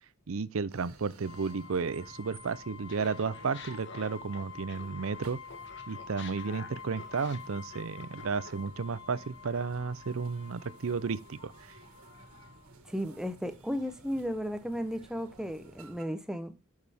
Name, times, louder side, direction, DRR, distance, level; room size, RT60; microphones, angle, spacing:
voice 1, 0.3-5.4 5.9-11.5, right 5 dB, 65° right, 0.5 m, -33 dB
sound 1, 0.7-16.0, right 2 dB, 90° right, 2.0 m, -55 dB
sound 2, 1.2-12.7, left 6 dB, 70° left, 1.5 m, -48 dB
Laughter, 2.9-5.2 5.5-8.7, left 5 dB, 55° left, 1.5 m, -50 dB
voice 2, 12.9-16.5, equal, 5° right, 0.8 m, -34 dB
11.0 x 6.4 x 3.5 m
head